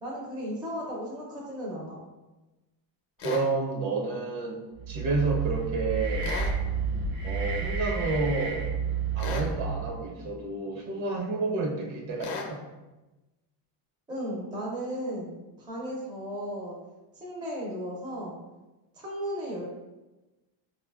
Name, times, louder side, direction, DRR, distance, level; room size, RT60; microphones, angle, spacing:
voice 1, 0.0-2.0 14.1-16.8 17.2-18.4 19.0-19.6, equal, 10° right, -4 dB, 0.4 m, -35 dB
sound 1, 3.2-3.5 6.2-6.6 9.2-9.5 12.2-12.5, left 4 dB, 50° left, 0.6 m, -35 dB
voice 2, 3.2-4.6 4.9-6.4 7.2-8.6 9.1-12.6, right 3 dB, 70° right, -1 dB, 1.0 m, -30 dB
sound 2, 4.7-10.1, right 5 dB, 50° right, 0.7 m, -30 dB
4.3 x 2.4 x 2.3 m, 1.1 s
cardioid pair, 145°, 49 cm